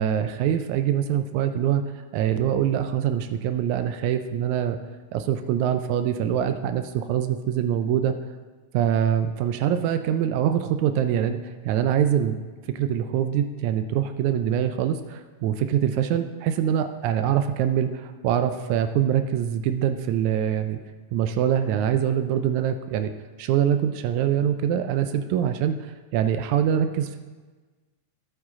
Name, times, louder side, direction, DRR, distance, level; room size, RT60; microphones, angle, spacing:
voice 1, 0.0-1.8 2.1-4.8 5.1-8.1 8.7-12.4 12.7-20.8 21.1-23.1 23.4-27.2, right 9 dB, 85° right, 9 dB, 1.7 m, -24 dB
13.5 x 8.1 x 3.6 m, 1.3 s
omnidirectional pair, 3.8 m